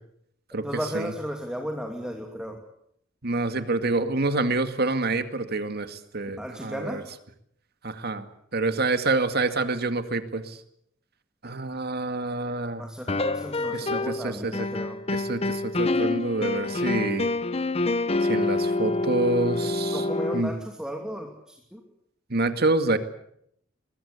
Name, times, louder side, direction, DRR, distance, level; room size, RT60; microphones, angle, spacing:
voice 1, 0.6-2.6 6.4-7.0 12.8-15.0 19.9-21.8, equal, 5° right, 2 dB, 2.8 m, -35 dB
voice 2, 3.2-7.0 7.8-8.3 8.5-10.6 11.4-12.8 13.7-13.9 14.2-14.7 15.1-17.3 18.2-20.0 20.3-20.5 22.3-23.0, right 2 dB, 55° right, 9 dB, 2.2 m, -27 dB
sound 1, 13.1-14.2 14.5-20.4, left 2 dB, 30° left, 1.1 m, -27 dB
23.5 x 21.5 x 8.3 m, 0.71 s
head